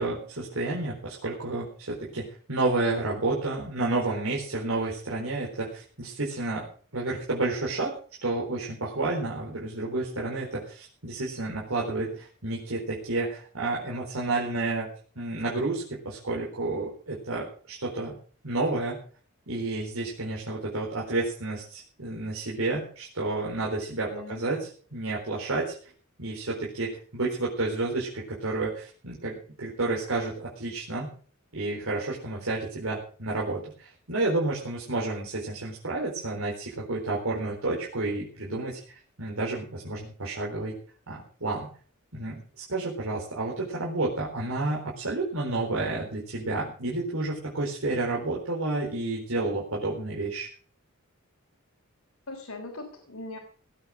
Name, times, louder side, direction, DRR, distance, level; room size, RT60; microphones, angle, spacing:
voice 1, 0.0-6.7 6.9-14.9 15.2-18.2 18.4-19.0 19.5-25.7 26.2-31.1 31.5-40.8 41.1-41.7 42.1-50.5, right 2 dB, 85° right, -4 dB, 4.2 m, -30 dB
voice 2, 24.1-24.4 52.3-53.4, left 2 dB, 85° left, 3 dB, 3.5 m, -40 dB
18.5 x 8.5 x 6.4 m, 0.43 s
head